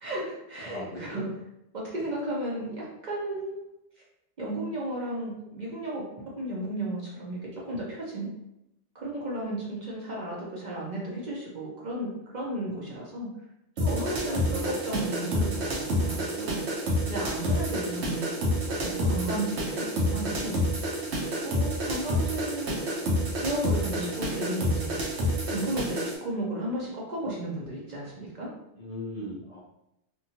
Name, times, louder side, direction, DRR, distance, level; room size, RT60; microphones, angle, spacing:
voice 1, 0.0-1.3 1.7-3.6 4.4-6.0 6.3-8.3 8.9-13.3 13.8-16.6 17.1-18.2 18.7-20.6 21.4-22.8 23.3-24.9 25.5-28.5, right 1 dB, 50° right, -4 dB, 0.7 m, -34 dB
voice 2, 0.6-1.3 14.3-14.8 19.4-19.6 28.7-29.6, left 1 dB, 50° left, -7 dB, 0.4 m, -39 dB
sound 1, 13.8-26.2, equal, 75° right, 1.0 m, -29 dB
2.9 x 2.3 x 2.7 m, 0.84 s
omnidirectional pair, 1.2 m